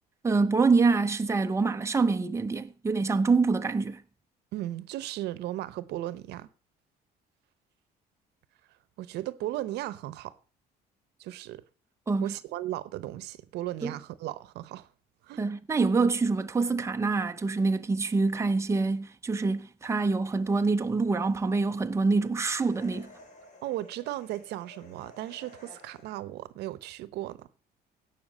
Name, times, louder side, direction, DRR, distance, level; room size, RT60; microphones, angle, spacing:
voice 1, 0.2-4.0 12.1-12.3 13.8-13.9 15.4-23.1, right 4 dB, 15° right, 0.8 m, -26 dB
voice 2, 4.5-6.5 9.0-10.3 11.2-11.6 12.2-14.9 15.2-15.4 23.6-27.5, right 15 dB, 80° right, 0.9 m, -36 dB
sound 1, 22.5-26.3, left 2 dB, 45° left, 3.3 m, -53 dB
16.5 x 5.8 x 6.3 m
cardioid pair, 110°, 17 cm